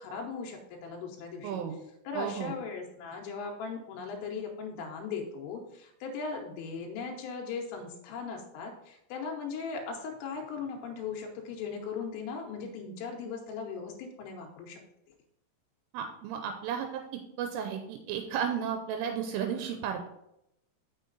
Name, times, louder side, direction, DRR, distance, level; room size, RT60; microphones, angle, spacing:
voice 1, 0.0-1.6 2.0-14.8, left 5 dB, 80° left, 1 dB, 3.3 m, -38 dB
voice 2, 1.4-1.7 2.1-2.5 15.9-17.0 17.4-20.1, right 8 dB, 85° right, 5 dB, 3.1 m, -33 dB
6.6 x 6.5 x 3.9 m, 0.81 s
omnidirectional pair, 5.8 m